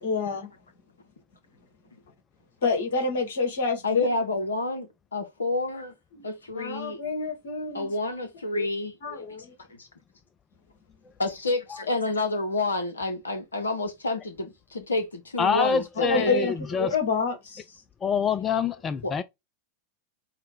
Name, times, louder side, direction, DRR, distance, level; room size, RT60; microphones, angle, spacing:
voice 1, 0.0-0.5 2.6-4.1 6.1-6.3 6.5-7.9 8.5-8.7 9.0-9.5 16.0-17.6, left 4 dB, 60° left, 1.3 m, -28 dB
voice 2, 3.8-5.9 6.2-7.0 7.7-8.9 9.7-9.9 11.2-16.5 19.0-19.1, left 2 dB, 75° left, 0.6 m, -29 dB
voice 3, 15.4-17.0 18.0-19.2, left 6 dB, 20° left, 0.3 m, -26 dB
5.6 x 2.1 x 3.1 m
figure-of-eight pair, 90°, 0 cm